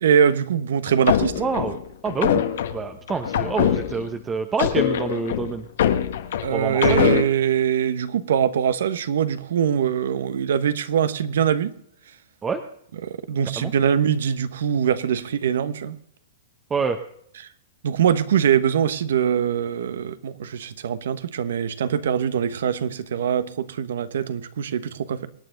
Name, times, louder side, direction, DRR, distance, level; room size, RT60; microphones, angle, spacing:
voice 1, 0.0-1.4 6.4-11.7 13.0-16.0 17.8-25.3, right 8 dB, 70° right, 1.1 m, -22 dB
sound 1, 0.9-4.2 4.6-7.2, left 9 dB, 70° left, 1.4 m, -23 dB
voice 2, 1.4-1.8 2.0-2.4 2.7-5.7 6.5-7.2 12.4-12.6 13.6-13.7 16.7-17.0, right 5 dB, 15° right, 0.9 m, -27 dB
24.0 x 9.1 x 3.9 m
hypercardioid pair, 135°, 0 cm